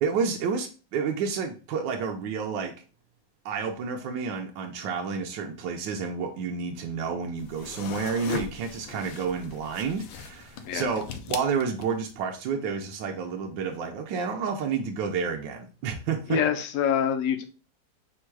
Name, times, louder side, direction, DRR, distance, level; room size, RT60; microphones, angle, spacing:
voice 1, 0.0-2.7 3.4-11.0 11.3-16.4, right 5 dB, 75° right, 3 dB, 1.3 m, -30 dB
sound 1, 7.4-12.1, left 7 dB, 90° left, 1.3 m, -39 dB
voice 2, 16.3-17.4, left 8 dB, 70° left, 7 dB, 0.7 m, -25 dB
4.4 x 2.3 x 4.5 m, 0.36 s
omnidirectional pair, 2.0 m